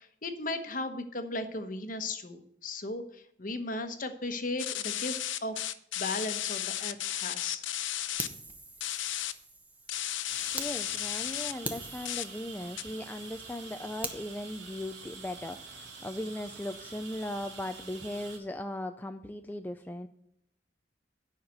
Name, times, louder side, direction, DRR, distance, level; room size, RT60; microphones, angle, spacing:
voice 1, 0.0-5.6 6.0-7.7, left 2 dB, 45° left, 8 dB, 1.1 m, -36 dB
sound 1, 4.6-8.3 8.8-9.3 9.9-11.5 12.0-12.2 12.8-12.9, left 12 dB, 90° left, 0.6 m, -34 dB
Fire, 8.2-10.7 11.2-11.3 11.6-14.2, right 2 dB, 10° right, 0.9 m, -43 dB
sound 2, 10.3-18.4, right 4 dB, 70° right, 2.2 m, -47 dB
voice 2, 10.5-20.1, left 1 dB, 10° left, 7 dB, 0.4 m, -38 dB
9.5 x 5.8 x 7.9 m, 0.71 s
head